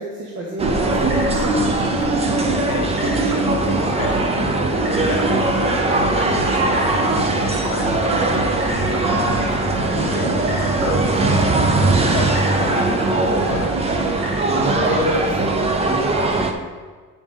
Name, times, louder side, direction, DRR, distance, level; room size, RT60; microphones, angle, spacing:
voice 1, 0.0-1.9 4.9-5.2 14.5-16.7, equal, 35° right, -3 dB, 1.1 m, -28 dB
sound 1, 0.6-16.5, right 2 dB, 20° right, 0.5 m, -20 dB
sound 2, 0.6-15.5, right 4 dB, 70° right, 1.6 m, -29 dB
voice 2, 2.7-4.4 5.0-13.7 14.5-15.1, left 7 dB, 40° left, 3 dB, 0.6 m, -32 dB
8.5 x 5.5 x 5.0 m, 1.5 s
cardioid pair, 175°, 35 cm